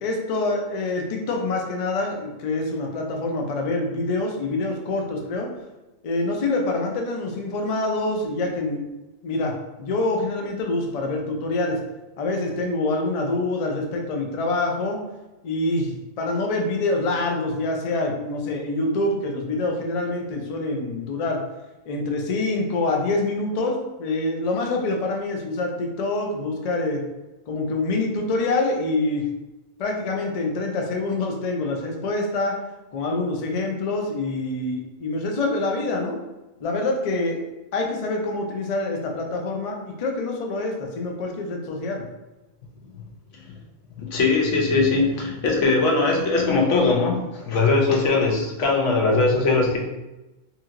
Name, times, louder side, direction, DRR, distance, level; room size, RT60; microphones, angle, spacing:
voice 1, 0.0-5.5 6.0-8.9 9.2-9.5 9.8-11.8 12.2-15.0 15.4-21.4 21.9-27.0 27.5-29.2 29.8-32.6 32.9-36.2 36.6-37.4 37.7-42.1, left 2 dB, 55° left, 2 dB, 0.4 m, -26 dB
voice 2, 44.0-49.8, left 3 dB, 90° left, 0 dB, 1.0 m, -20 dB
2.9 x 2.8 x 2.4 m, 1.0 s
omnidirectional pair, 1.2 m